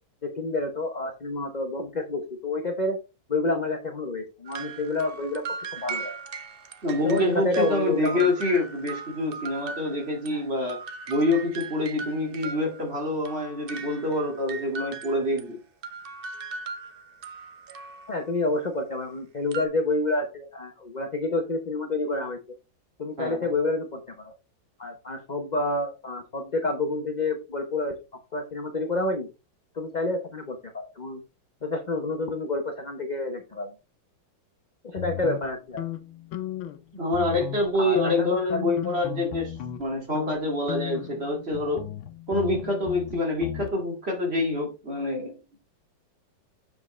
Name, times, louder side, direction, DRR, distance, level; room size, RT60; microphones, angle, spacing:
voice 1, 0.2-3.0 3.3-5.4 5.7-6.1 7.0-8.3 10.3-10.4 18.1-22.4 23.0-24.3 24.8-28.0 28.3-29.3 29.7-31.2 31.6-33.7 34.8-35.8 37.8-38.6, left 2 dB, 40° left, 4 dB, 0.6 m, -29 dB
sound 1, 4.4-10.4 10.7-15.4 15.8-18.3 19.5-19.7, right 4 dB, 85° right, 0.5 m, -38 dB
voice 2, 6.8-10.8 11.1-15.6 23.2-23.5 36.9-41.8 42.3-45.6, left 2 dB, 30° right, 1 dB, 2.4 m, -26 dB
sound 2, 35.0-36.8 37.1-37.7 38.0-39.8 40.1-40.4 40.7-43.7, left 13 dB, 80° left, 1.6 m, -35 dB
7.3 x 6.3 x 3.1 m, 0.29 s
omnidirectional pair, 2.2 m